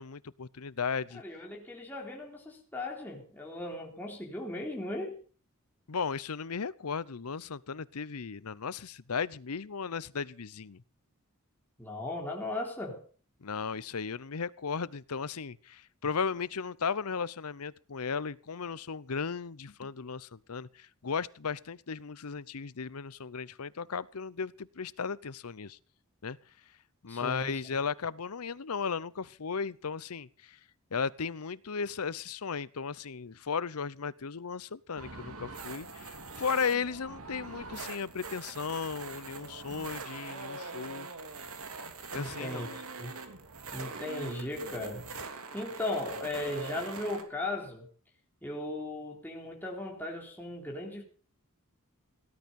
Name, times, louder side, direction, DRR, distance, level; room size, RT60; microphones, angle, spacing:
voice 1, 0.0-1.2 5.9-10.8 13.4-25.8 26.2-26.4 27.0-30.6 30.9-41.1 42.1-42.7, left 5 dB, 85° left, 0.8 m, -35 dB
voice 2, 1.1-5.2 11.8-13.0 27.1-27.6 42.1-43.1 43.7-45.1 45.5-47.9 48.4-51.0, left 2 dB, 10° left, 3.8 m, -37 dB
sound 1, 35.0-47.2, right 3 dB, 75° right, 3.0 m, -43 dB
18.0 x 12.0 x 5.4 m
head